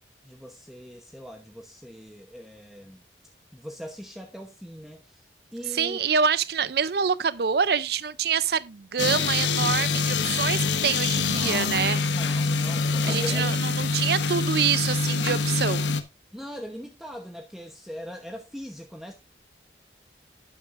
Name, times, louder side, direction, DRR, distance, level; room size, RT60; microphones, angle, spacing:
voice 1, 0.2-3.0 3.5-6.1 11.2-11.8 12.1-13.6 16.3-19.1, equal, ahead, 0.9 m, -40 dB
voice 2, 5.7-12.0 13.0-16.0, right 6 dB, 60° right, 0.5 m, -26 dB
sound 1, 9.0-16.0, left 4 dB, 85° left, 1.2 m, -25 dB
12.0 x 9.5 x 2.5 m
head